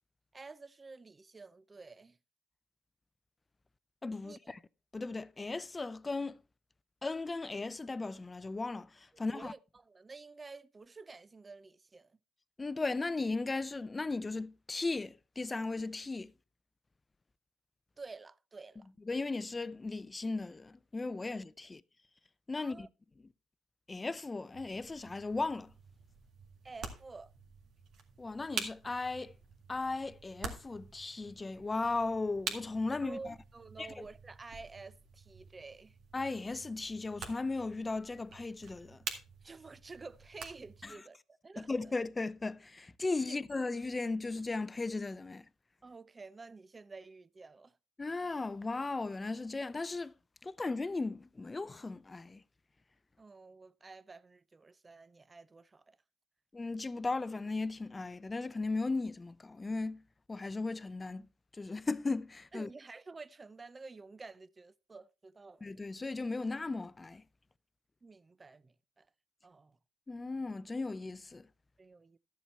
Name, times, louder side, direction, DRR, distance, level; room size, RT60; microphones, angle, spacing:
voice 1, 0.3-2.2 4.2-4.5 9.2-12.2 18.0-18.9 22.6-22.9 26.6-27.3 33.0-36.0 39.4-41.9 43.3-43.4 45.8-47.8 53.2-56.0 62.5-65.7 68.0-69.1 69.4-69.8 71.8-72.2, right 3 dB, 25° right, 0.5 m, -50 dB
voice 2, 4.0-4.6 4.9-6.4 7.0-9.5 12.6-16.3 19.1-21.8 22.5-22.9 23.9-25.7 28.2-29.3 29.7-33.3 33.8-33.9 36.1-39.0 40.8-41.0 41.6-45.5 48.0-50.1 50.4-52.4 56.5-60.0 60.3-61.3 61.6-62.7 65.6-67.2 70.1-71.5, left 3 dB, 25° left, 0.5 m, -36 dB
sound 1, 24.5-40.9, right 5 dB, 75° right, 1.9 m, -47 dB
12.5 x 7.2 x 4.3 m
cardioid pair, 90°, 0 cm